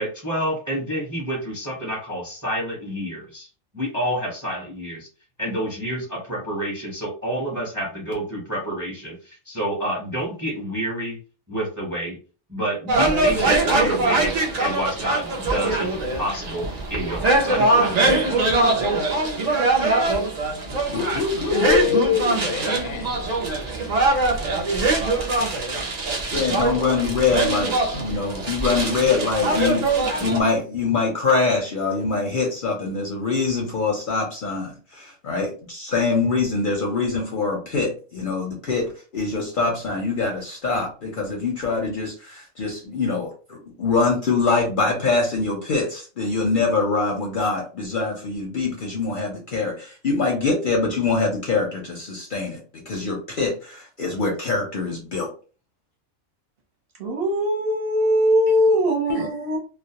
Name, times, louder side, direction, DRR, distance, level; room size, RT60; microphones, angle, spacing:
voice 1, 0.0-3.5 3.7-5.1 5.4-11.2 11.5-12.2 12.5-14.3 14.6-18.4, right 1 dB, 20° right, 0.5 m, -29 dB
sound 1, 12.9-30.4, right 2 dB, 70° right, 0.3 m, -22 dB
voice 2, 20.7-22.0 26.3-55.3, left 4 dB, 55° left, 0.6 m, -24 dB
voice 3, 21.5-23.1 59.1-59.3, left 8 dB, 85° left, 1.0 m, -23 dB
voice 4, 57.0-59.6, equal, 55° right, 0.8 m, -21 dB
2.3 x 2.0 x 2.7 m
omnidirectional pair, 1.3 m